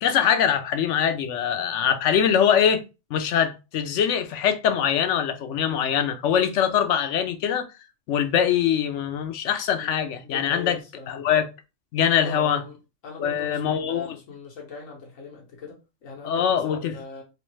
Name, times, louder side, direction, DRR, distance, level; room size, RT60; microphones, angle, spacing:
voice 1, 0.0-2.8 3.1-7.7 8.1-10.8 11.1-11.5 11.9-12.6 13.2-14.1 16.2-16.9, left 8 dB, 70° left, 0.9 m, -23 dB
voice 2, 10.2-11.1 12.2-12.8 13.0-17.2, left 4 dB, 85° left, 1.4 m, -40 dB
3.1 x 3.0 x 3.1 m
omnidirectional pair, 1.4 m